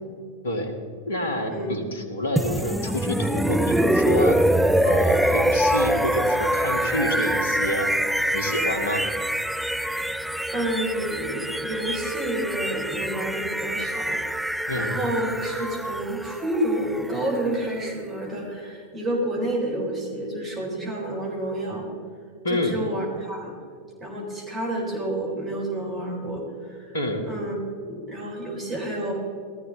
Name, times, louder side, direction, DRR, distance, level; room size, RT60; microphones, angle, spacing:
voice 1, 0.4-0.8 1.1-4.4 4.8-7.9 8.3-9.1 14.7-15.0 22.4-22.8 26.9-27.2, left 1 dB, 65° left, 6 dB, 1.9 m, -28 dB
sound 1, 2.4-18.2, right 1 dB, ahead, 0.5 m, -25 dB
voice 2, 10.5-21.8 22.5-23.5 24.0-27.0 27.2-29.1, right 1 dB, 25° right, -2 dB, 4.0 m, -29 dB
17.0 x 13.5 x 4.0 m, 2.2 s
figure-of-eight pair, 90°, 0 cm